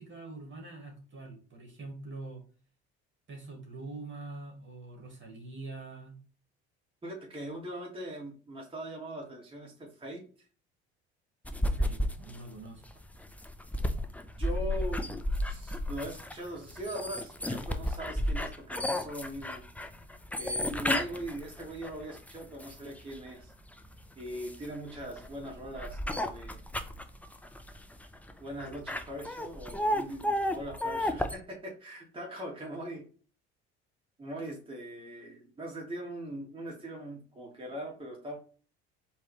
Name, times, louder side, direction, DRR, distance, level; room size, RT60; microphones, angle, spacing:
voice 1, 0.0-2.4 3.3-6.1 11.7-12.8, right 3 dB, 35° right, 1 dB, 2.2 m, -44 dB
voice 2, 7.0-10.2 14.4-15.1 15.4-19.7 20.4-23.5 24.2-26.6 28.4-33.0 34.2-38.4, right 1 dB, 15° right, -2 dB, 1.8 m, -41 dB
sound 1, 11.4-23.2 23.7-31.3, left 1 dB, 5° left, 0.6 m, -33 dB
4.5 x 3.1 x 3.2 m, 0.39 s
hypercardioid pair, 65°, 34 cm